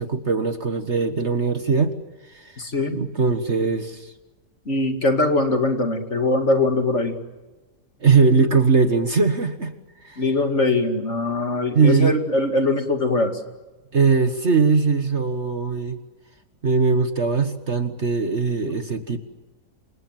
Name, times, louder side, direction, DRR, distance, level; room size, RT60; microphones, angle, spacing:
voice 1, 0.0-1.9 2.3-4.1 8.0-9.7 10.0-10.2 11.7-12.2 13.9-16.0 16.6-19.2, right 4 dB, 40° right, 9 dB, 1.6 m, -20 dB
voice 2, 2.6-3.0 4.7-7.2 10.2-13.4 18.6-18.7, left 2 dB, 40° left, 6 dB, 2.7 m, -22 dB
29.0 x 26.5 x 7.6 m, 1.2 s
omnidirectional pair, 1.8 m